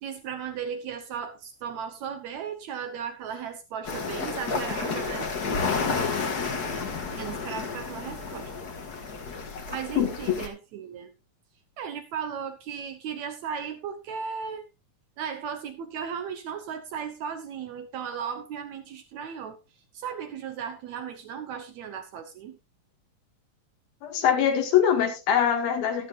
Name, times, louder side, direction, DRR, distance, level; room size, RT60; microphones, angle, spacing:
voice 1, 0.0-5.3 7.2-8.5 9.7-11.1 11.8-14.6 15.2-19.6 19.9-22.6, right 7 dB, 70° right, 9 dB, 1.9 m, -36 dB
sound 1, 3.8-10.5, left 4 dB, 40° left, 1.4 m, -31 dB
voice 2, 10.0-10.4 24.0-26.1, left 9 dB, 85° left, 4 dB, 3.8 m, -23 dB
13.0 x 12.5 x 2.6 m, 0.25 s
omnidirectional pair, 4.0 m